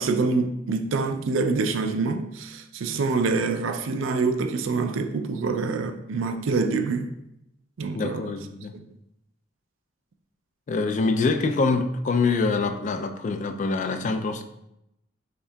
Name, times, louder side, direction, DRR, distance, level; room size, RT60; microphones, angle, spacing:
voice 1, 0.0-7.1 7.8-8.4 8.7-8.8, right 4 dB, 85° right, 0.4 m, -26 dB
voice 2, 7.9-8.8 10.7-14.4, left 3 dB, 40° left, 0.3 m, -25 dB
5.6 x 3.6 x 2.2 m
head